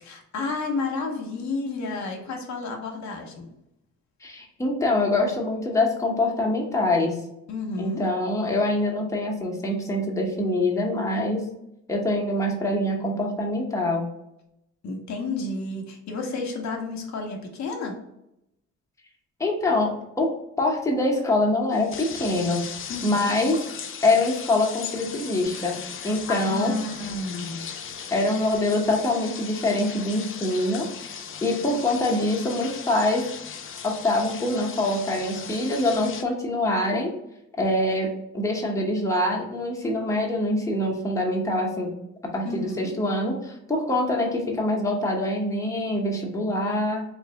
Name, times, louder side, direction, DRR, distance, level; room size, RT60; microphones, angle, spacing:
voice 1, 0.0-3.5 7.5-8.0 14.8-18.0 22.9-23.3 26.0-27.7 42.4-42.9, left 3 dB, 65° left, 2 dB, 0.9 m, -31 dB
voice 2, 4.2-7.1 7.8-11.4 11.9-14.1 19.4-20.3 20.6-22.6 23.0-23.6 24.0-25.8 26.0-26.7 28.1-30.9 31.4-33.2 33.8-37.1 37.6-41.9 42.2-47.0, left 2 dB, 10° left, -1 dB, 0.9 m, -24 dB
sound 1, 21.7-36.2, left 7 dB, 45° left, 0.5 m, -38 dB
3.2 x 2.7 x 3.3 m, 0.83 s
cardioid pair, 90°, 30 cm